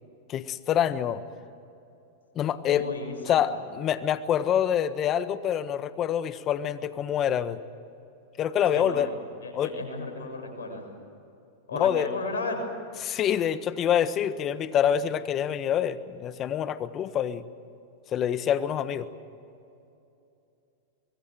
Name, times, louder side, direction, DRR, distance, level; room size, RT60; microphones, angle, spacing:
voice 1, 0.3-1.2 2.3-2.9 3.3-7.6 8.4-9.1 9.5-9.7 11.7-12.1 13.0-17.4 18.1-19.1, left 9 dB, 35° left, 12 dB, 1.4 m, -26 dB
voice 2, 2.6-3.6 8.7-10.8 11.7-12.6, left 3 dB, 85° left, 3 dB, 6.7 m, -35 dB
25.0 x 21.5 x 7.7 m, 2.7 s
hypercardioid pair, 110°, 0 cm